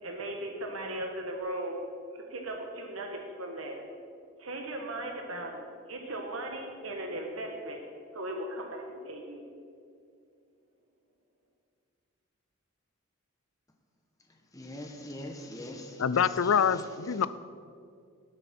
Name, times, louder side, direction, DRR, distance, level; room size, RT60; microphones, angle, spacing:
voice 1, 0.0-1.8 2.1-3.8 4.4-7.8 8.1-9.4, right 1 dB, 70° right, 2 dB, 1.4 m, -37 dB
voice 2, 14.5-16.9, left 1 dB, 15° left, 2 dB, 1.3 m, -42 dB
voice 3, 16.0-17.3, left 7 dB, 70° left, 15 dB, 0.4 m, -25 dB
19.0 x 8.4 x 4.4 m, 2.3 s
head